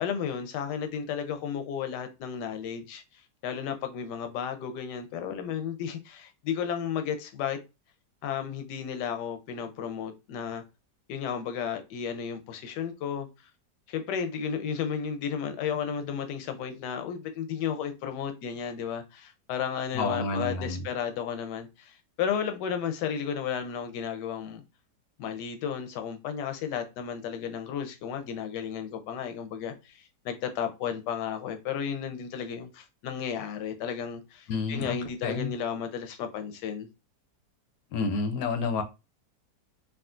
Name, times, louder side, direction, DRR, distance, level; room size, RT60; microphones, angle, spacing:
voice 1, 0.0-3.0 3.4-7.6 8.2-10.6 11.1-13.3 13.9-24.6 25.2-36.9, left 7 dB, 85° left, 1.2 m, -33 dB
voice 2, 19.9-20.8 34.5-35.0 35.2-35.5 37.9-38.8, left 4 dB, 70° left, 1.0 m, -29 dB
3.6 x 2.3 x 2.4 m
omnidirectional pair, 1.8 m